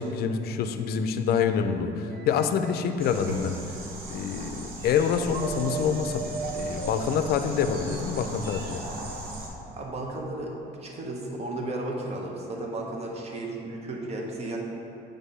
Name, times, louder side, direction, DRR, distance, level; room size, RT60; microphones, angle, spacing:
voice 1, 0.0-3.5 4.1-6.3 6.5-8.8, left 7 dB, 65° left, 8 dB, 0.5 m, -26 dB
sound 1, 2.1-3.5 4.9-7.2, right 5 dB, 80° right, 0.5 m, -37 dB
sound 2, 3.0-9.5, right 2 dB, 60° right, 1.1 m, -38 dB
voice 2, 9.7-14.6, right 2 dB, 40° right, 0 dB, 1.1 m, -34 dB
7.2 x 3.6 x 5.5 m, 2.8 s
cardioid pair, 110°, 17 cm